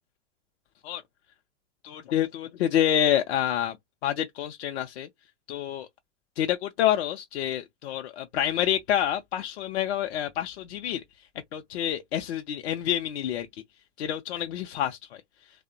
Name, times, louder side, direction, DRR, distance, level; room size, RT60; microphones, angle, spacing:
voice 1, 1.8-3.8 4.0-5.1 5.5-5.9 6.4-11.0 11.5-13.5 14.0-15.0, left 11 dB, 65° left, 0.5 m, -27 dB
2.7 x 2.1 x 2.4 m
hypercardioid pair, 110°, 34 cm